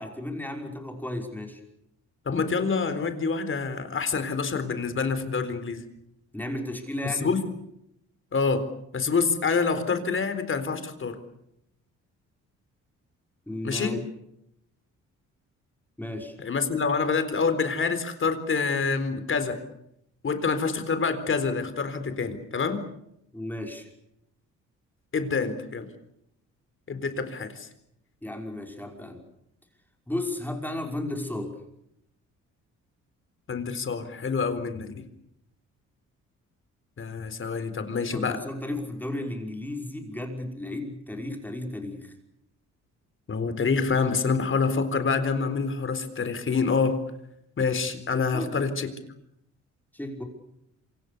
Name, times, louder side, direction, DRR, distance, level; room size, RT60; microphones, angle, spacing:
voice 1, 0.0-1.6 6.3-7.3 13.5-14.0 16.0-16.4 23.3-23.9 28.2-29.2 30.1-31.6 38.1-42.1 48.3-48.5 49.9-50.2, left 1 dB, 5° left, 3 dB, 5.7 m, -34 dB
voice 2, 2.3-5.8 7.2-7.5 8.3-8.7 8.9-11.2 13.6-14.0 16.4-19.6 20.2-22.8 25.1-25.9 26.9-27.7 33.5-35.0 37.0-38.4 43.3-47.1 47.6-49.0, left 5 dB, 45° left, 11 dB, 4.1 m, -27 dB
27.0 x 25.5 x 6.9 m, 0.79 s
cardioid pair, 90°, 30 cm